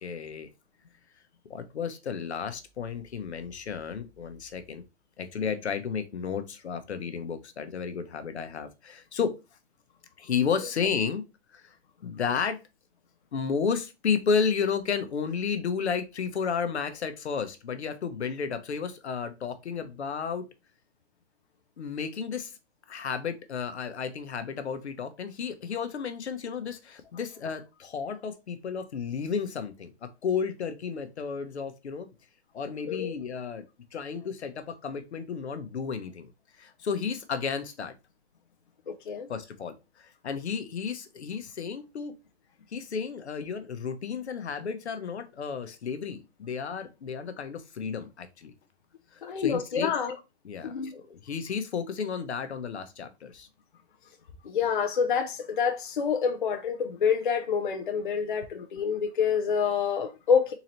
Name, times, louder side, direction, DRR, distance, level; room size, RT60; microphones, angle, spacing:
voice 1, 0.0-0.5 1.5-4.8 5.2-9.3 10.2-11.2 11.5-11.6 12.0-12.6 13.3-20.4 21.8-22.5 22.9-32.1 32.5-33.6 33.9-36.3 36.6-37.9 39.3-42.1 42.7-48.5 49.4-49.9 50.4-53.5, left 6 dB, 80° left, 0.8 m, -32 dB
voice 2, 38.9-39.3 49.2-50.2 50.6-51.0 54.4-60.5, left 6 dB, 50° left, 0.5 m, -27 dB
3.9 x 2.9 x 2.9 m
hypercardioid pair, 180°, 33 cm